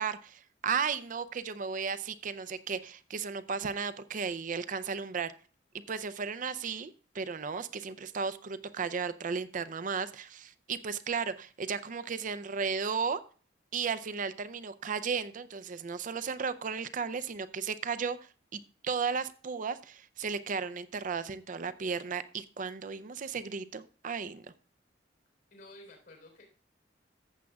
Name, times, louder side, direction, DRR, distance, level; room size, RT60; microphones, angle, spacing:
voice 1, 0.0-5.3 5.9-13.2 13.7-18.2 18.5-24.5, right 5 dB, 45° right, 14 dB, 0.5 m, -35 dB
voice 2, 25.5-26.4, left 1 dB, 65° left, 1 dB, 3.8 m, -52 dB
14.5 x 7.4 x 2.3 m, 0.38 s
head